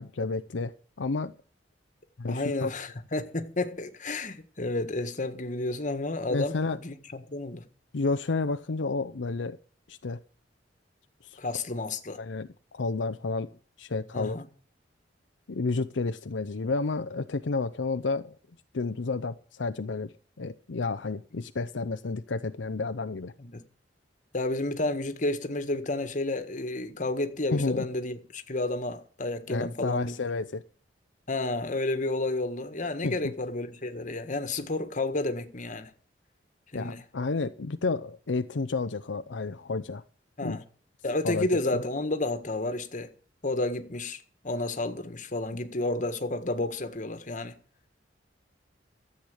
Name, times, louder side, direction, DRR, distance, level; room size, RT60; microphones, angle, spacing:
voice 1, 0.0-1.3 2.2-2.7 6.3-6.8 7.9-9.6 9.9-10.2 11.2-11.4 12.2-13.5 13.8-14.4 15.5-18.4 18.7-20.1 20.4-23.3 27.5-27.9 29.5-30.6 33.0-33.3 36.7-40.0 40.4-40.6 41.2-41.5 41.7-41.8, left 3 dB, 80° left, 0.6 m, -31 dB
voice 2, 2.3-7.6 11.4-12.2 14.1-14.5 23.4-23.6 24.3-30.1 31.3-35.9 36.7-37.0 40.4-40.6 41.0-43.1 43.4-47.6, left 2 dB, 45° left, 1.6 m, -31 dB
13.5 x 8.0 x 8.0 m
head